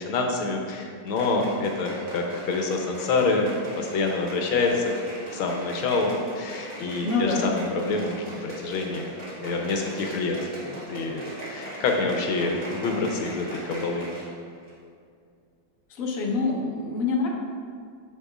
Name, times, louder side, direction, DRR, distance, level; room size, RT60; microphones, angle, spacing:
voice 1, 0.0-4.9 5.3-10.4 10.6-14.0, left 3 dB, 85° left, 2 dB, 1.6 m, -27 dB
sound 1, 1.1-14.3 14.6-14.7, right 1 dB, 40° right, 1.8 m, -39 dB
voice 2, 7.0-7.5 15.9-17.3, left 4 dB, 50° left, -1 dB, 1.2 m, -26 dB
8.4 x 7.8 x 2.4 m, 2.2 s
omnidirectional pair, 2.3 m